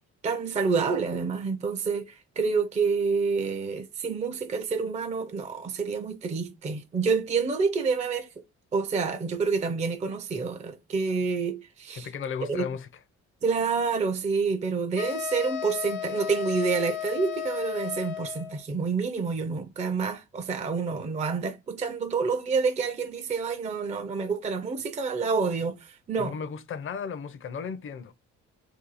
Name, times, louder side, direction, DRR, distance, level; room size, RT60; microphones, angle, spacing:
voice 1, 0.2-8.3 8.7-12.1 12.5-12.7 13.4-26.3, right 5 dB, 25° right, 0.4 m, -28 dB
voice 2, 11.9-12.9 26.2-28.1, left 6 dB, 45° left, 0.5 m, -35 dB
sound 1, 15.0-18.6, left 11 dB, 80° left, 0.7 m, -34 dB
2.8 x 2.3 x 3.9 m
cardioid pair, 90°, 30 cm